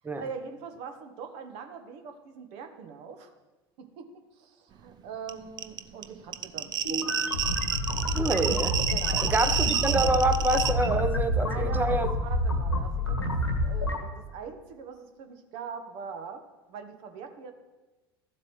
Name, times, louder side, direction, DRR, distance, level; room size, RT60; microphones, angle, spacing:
voice 1, 0.2-3.3 3.8-7.2 8.9-9.6 11.4-17.5, right 6 dB, 55° right, 6 dB, 1.2 m, -42 dB
sound 1, 5.3-5.4 5.6-10.7, right 9 dB, 30° right, 0.5 m, -29 dB
sound 2, 6.8-14.0, left 1 dB, 90° left, 1.4 m, -28 dB
voice 2, 8.1-8.8 9.2-12.1, right 2 dB, 15° right, 9 dB, 0.9 m, -26 dB
13.5 x 7.4 x 3.2 m, 1.2 s
figure-of-eight pair, 75°, 13 cm